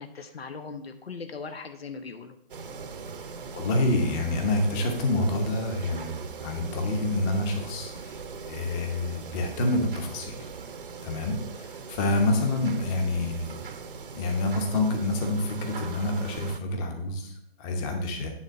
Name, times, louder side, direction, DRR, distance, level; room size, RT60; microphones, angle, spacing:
voice 1, 0.0-2.4, left 4 dB, 80° left, 8 dB, 1.0 m, -39 dB
sound 1, 2.5-16.6, right 5 dB, 60° right, 0.9 m, -40 dB
voice 2, 3.5-10.5 11.0-13.6 14.2-18.3, left 2 dB, 15° left, 4 dB, 0.9 m, -27 dB
9.7 x 3.5 x 6.4 m, 0.70 s
figure-of-eight pair, 150°, 30 cm